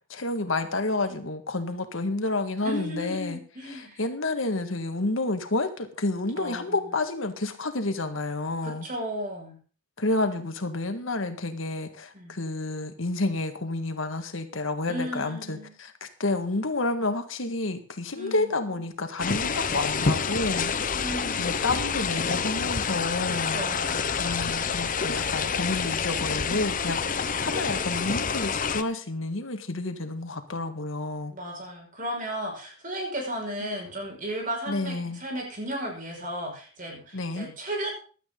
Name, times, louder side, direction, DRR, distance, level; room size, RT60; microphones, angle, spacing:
voice 1, 0.1-3.4 3.7-8.9 10.0-20.7 21.4-23.6 24.2-31.3 34.7-35.2 37.1-37.5, left 2 dB, 85° left, 8 dB, 1.8 m, -30 dB
voice 2, 2.6-4.0 6.3-6.8 8.6-9.6 12.1-12.4 14.9-15.8 18.1-18.5 20.9-21.6 23.3-24.1 27.1-27.6 31.3-37.9, equal, 45° right, 1 dB, 5.7 m, -35 dB
sound 1, 19.2-28.8, left 6 dB, 45° left, 0.9 m, -28 dB
16.0 x 12.0 x 3.9 m, 0.40 s
head